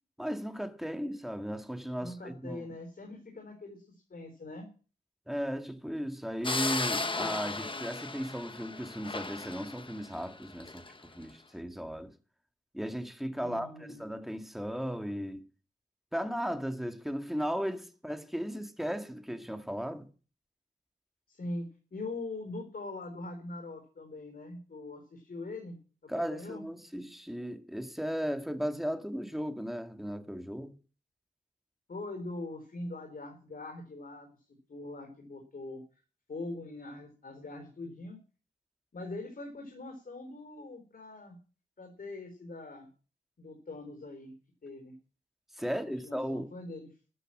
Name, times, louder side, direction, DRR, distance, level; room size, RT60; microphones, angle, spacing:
voice 1, 0.2-2.6 5.3-10.8 11.2-12.1 12.7-15.4 16.1-20.1 26.1-30.7 45.6-46.5, equal, ahead, 2.0 m, -36 dB
voice 2, 2.0-4.7 13.4-14.0 18.5-18.6 21.3-25.8 26.0-26.6 31.9-35.8 36.3-38.2 38.9-41.4 41.8-42.9 43.4-44.3 44.6-44.9 45.7-46.9, left 2 dB, 55° left, 4.0 m, -42 dB
sound 1, 6.4-10.9, left 3 dB, 30° left, 1.2 m, -35 dB
13.5 x 9.7 x 7.5 m
wide cardioid pair, 100°, 18 cm